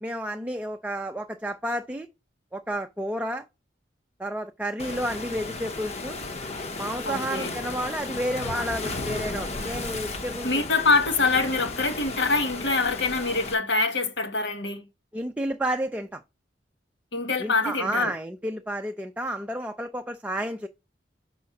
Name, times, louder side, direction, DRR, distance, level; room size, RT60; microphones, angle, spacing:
voice 1, 0.0-2.1 2.5-3.5 4.2-6.2 6.8-10.6 15.1-16.2 17.4-20.7, right 1 dB, 10° right, 0.5 m, -31 dB
Waves surf, 4.8-13.5, left 3 dB, 35° left, 1.0 m, -34 dB
voice 2, 7.0-7.5 10.4-14.8 17.1-18.1, left 3 dB, 75° left, 1.4 m, -25 dB
5.9 x 4.2 x 5.8 m
head